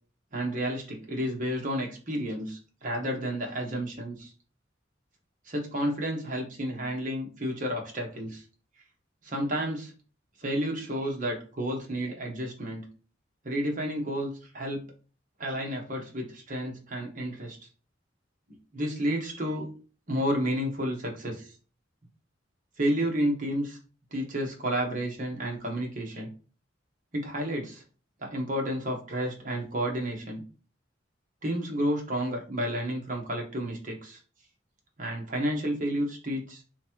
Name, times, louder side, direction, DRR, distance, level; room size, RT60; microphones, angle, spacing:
voice 1, 0.3-4.3 5.5-8.4 9.2-9.9 10.4-12.9 13.4-14.8 15.4-17.6 18.7-19.7 20.1-21.5 22.8-23.8 24.1-26.3 27.1-27.8 28.2-30.4 31.4-34.2 35.0-36.6, equal, 45° right, 1 dB, 1.2 m, -31 dB
3.5 x 3.1 x 4.5 m, 0.37 s
head